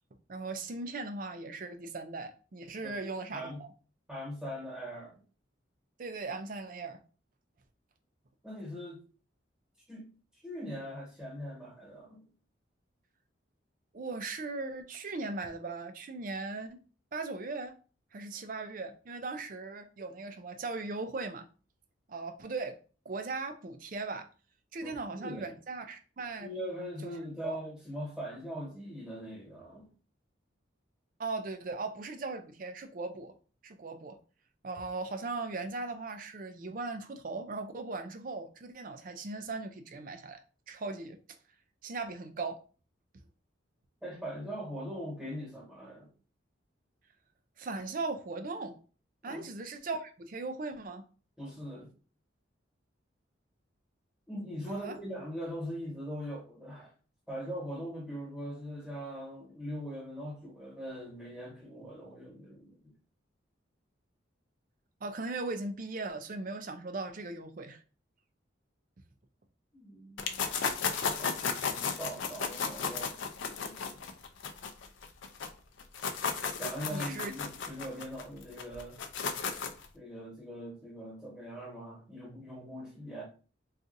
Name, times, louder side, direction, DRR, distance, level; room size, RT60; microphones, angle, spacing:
voice 1, 0.3-3.7 6.0-7.0 13.9-16.8 17.1-17.7 18.1-21.5 22.1-22.8 23.1-24.3 24.7-26.5 27.0-27.1 27.4-27.6 31.2-33.3 33.6-34.2 34.6-41.2 41.8-42.6 47.6-48.7 49.2-51.0 54.7-55.0 65.0-67.8 76.9-77.3, right 3 dB, 45° right, 0.4 m, -38 dB
voice 2, 3.3-3.6 4.1-5.2 8.4-9.0 9.9-10.0 10.4-12.2 24.8-25.5 26.4-29.9 44.0-46.1 49.2-49.4 51.4-51.9 54.3-56.9 57.3-62.9 69.7-70.6 71.2-73.2 73.5-74.1 76.6-79.0 79.9-83.2, equal, 5° right, 1.2 m, -41 dB
sound 1, 70.2-75.5 75.8-79.9, left 5 dB, 75° left, 0.4 m, -34 dB
3.9 x 2.4 x 2.5 m
head